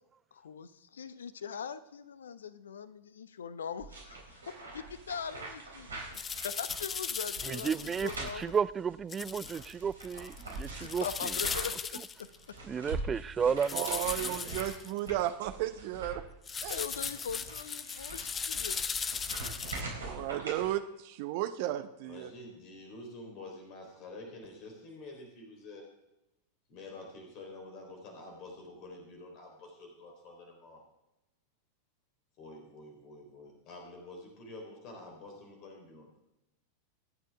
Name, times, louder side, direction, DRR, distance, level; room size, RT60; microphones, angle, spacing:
voice 1, 0.4-8.5 10.7-12.6 16.7-18.8, left 7 dB, 65° left, 14 dB, 0.8 m, -41 dB
sound 1, 3.8-11.9 12.2-20.7, right 2 dB, 70° right, 4.3 m, -44 dB
sound 2, 6.1-8.3 9.1-9.7 10.0-12.4 13.6-14.9 16.5-19.8, left 6 dB, 20° left, 0.7 m, -37 dB
voice 2, 7.4-11.0 12.7-13.9 14.2-14.3, right 6 dB, 20° right, 19 dB, 0.4 m, -32 dB
voice 3, 13.7-16.2 16.6-16.8 20.0-22.3, right 13 dB, 50° right, 11 dB, 0.8 m, -34 dB
voice 4, 22.0-25.8 26.7-30.8 32.4-36.2, left 2 dB, 40° left, 2 dB, 3.9 m, -48 dB
26.5 x 9.4 x 3.6 m, 0.90 s
figure-of-eight pair, 90°, 0 cm